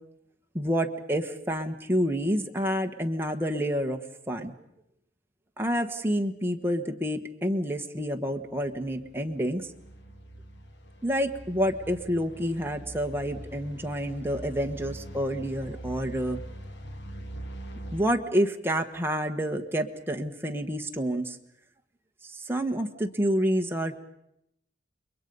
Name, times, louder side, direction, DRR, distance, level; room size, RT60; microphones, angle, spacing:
voice 1, 0.5-4.0 4.3-4.5 5.6-9.7 11.0-16.4 17.9-21.3 22.5-24.0, equal, 10° right, 3 dB, 1.3 m, -28 dB
sound 1, 8.3-18.0, right 1 dB, 65° left, 2.1 m, -43 dB
29.0 x 22.0 x 5.5 m, 0.79 s
head